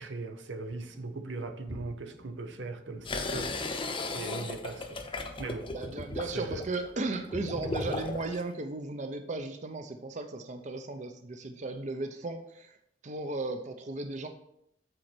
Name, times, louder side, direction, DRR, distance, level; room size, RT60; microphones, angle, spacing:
voice 1, 0.0-3.6 4.1-5.0 5.4-5.7 6.3-6.6, right 3 dB, 90° right, 0.8 m, -39 dB
sound 1, 0.6-6.4, equal, 10° right, 0.9 m, -52 dB
sound 2, 3.1-8.4, left 2 dB, 30° left, 0.7 m, -36 dB
voice 2, 5.7-12.8 13.0-14.3, right 2 dB, 40° right, 0.6 m, -36 dB
7.9 x 4.3 x 6.0 m
head